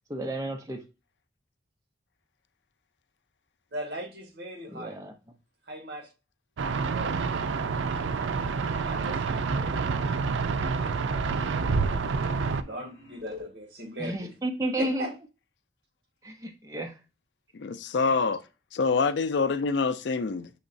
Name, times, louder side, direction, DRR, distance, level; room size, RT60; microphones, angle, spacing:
voice 1, 0.1-0.8 4.7-5.1 9.5-9.8 14.0-15.1 16.2-17.0, right 1 dB, 15° right, 0.6 m, -32 dB
voice 2, 3.7-5.0 5.7-6.1 6.9-7.1 8.8-9.5 12.6-14.3 14.8-15.1, right 1 dB, 65° right, 1.5 m, -38 dB
sound 1, 6.6-12.6, right 4 dB, 90° right, 0.4 m, -28 dB
sound 2, 8.4-13.5, left 4 dB, 35° right, 2.8 m, -50 dB
voice 3, 17.5-18.4 18.7-20.5, left 4 dB, 75° left, 0.4 m, -26 dB
6.4 x 3.0 x 2.6 m
head